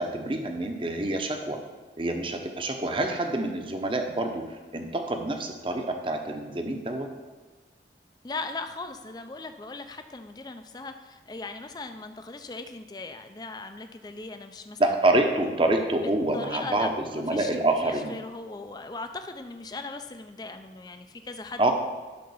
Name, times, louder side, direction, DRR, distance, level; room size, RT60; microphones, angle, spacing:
voice 1, 0.0-1.6 2.0-7.1 14.8-18.2 21.6-21.7, right 2 dB, 30° right, 4 dB, 0.8 m, -27 dB
voice 2, 8.2-14.8 16.3-16.9 17.1-21.6, left 3 dB, 20° left, 7 dB, 0.5 m, -39 dB
10.5 x 3.8 x 7.0 m, 1.3 s
head